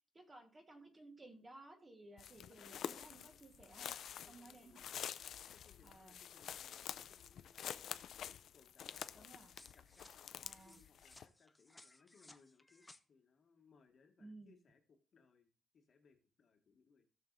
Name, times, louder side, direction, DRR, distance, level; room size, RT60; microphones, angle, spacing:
voice 1, 0.1-3.9 4.3-4.8 5.8-6.2 9.1-9.5 10.4-10.8 14.2-14.5, right 2 dB, 20° right, 4 dB, 1.4 m, -58 dB
sound 1, 2.2-11.2, left 9 dB, 60° left, 0.4 m, -48 dB
voice 2, 2.4-3.1 4.2-9.3 9.7-17.0, left 5 dB, 45° left, 4 dB, 1.5 m, -69 dB
sound 2, 8.9-13.0, left 2 dB, 10° left, 0.5 m, -63 dB
16.5 x 6.6 x 2.5 m, 0.33 s
wide cardioid pair, 175°, 0 cm